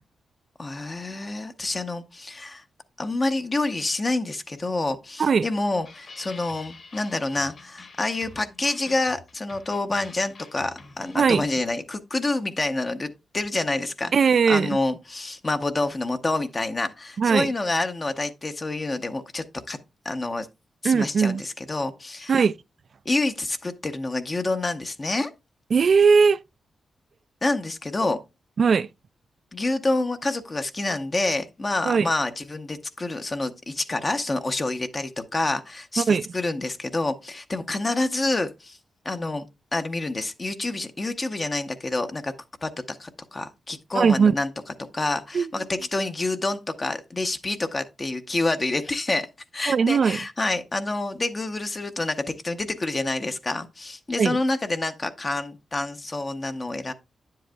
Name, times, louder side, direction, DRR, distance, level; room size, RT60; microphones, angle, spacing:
voice 1, 0.6-2.6 3.0-14.1 14.5-19.8 20.0-20.5 20.8-22.4 23.1-25.3 27.4-28.2 29.5-38.8 39.0-39.5 39.7-42.3 42.6-44.5 44.9-49.3 49.5-56.9, left 2 dB, 30° left, 0.7 m, -28 dB
sound 1, 5.8-11.5, left 3 dB, 50° left, 1.7 m, -47 dB
voice 2, 14.1-14.7 17.2-17.5 20.8-21.4 22.3-22.5 25.7-26.4 28.6-28.9 31.9-32.1 36.0-36.2 43.9-44.3 45.3-45.5 49.7-50.2 54.2-54.4, right 5 dB, 55° right, 0.3 m, -19 dB
9.4 x 7.6 x 2.2 m
cardioid pair, 95°, 0 cm